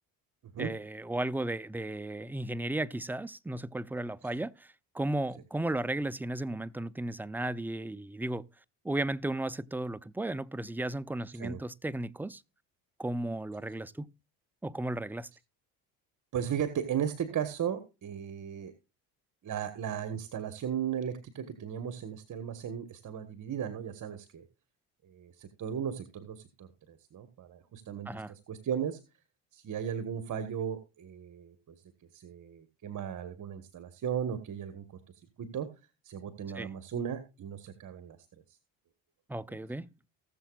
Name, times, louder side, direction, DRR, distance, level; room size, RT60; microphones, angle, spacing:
voice 1, 0.6-8.5 8.8-12.4 13.0-14.1 14.6-15.3 28.1-28.3 36.5-36.7 39.3-39.9, right 1 dB, 5° right, 0.5 m, -35 dB
voice 2, 16.3-18.7 19.4-24.4 25.0-29.0 29.5-31.7 32.1-34.8 35.4-35.7 36.0-38.2, right 8 dB, 50° right, 1.5 m, -36 dB
19.5 x 7.1 x 2.4 m
supercardioid pair, 80°, 39 cm